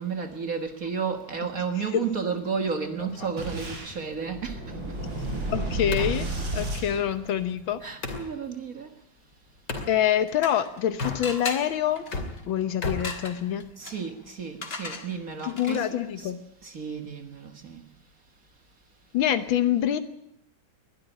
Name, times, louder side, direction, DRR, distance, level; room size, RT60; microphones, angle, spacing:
voice 1, 0.0-4.6 7.8-8.9 13.8-15.9 16.2-16.3 16.6-17.8, right 6 dB, 45° right, 7 dB, 1.8 m, -32 dB
sound 1, 3.0-8.3 9.7-9.9 10.9-11.6 11.9-13.9, left 3 dB, 60° left, 3.3 m, -37 dB
Boom, 3.4-7.8, right 1 dB, 70° right, 5.0 m, -32 dB
voice 2, 5.5-6.3 6.5-7.8 9.9-12.0 12.5-13.6 15.4-16.4 19.1-20.0, left 10 dB, 85° left, 11 dB, 1.8 m, -25 dB
sound 2, 9.9-10.8 11.2-16.1, left 3 dB, 30° left, 1.9 m, -39 dB
21.0 x 12.5 x 9.9 m, 0.76 s
omnidirectional pair, 2.1 m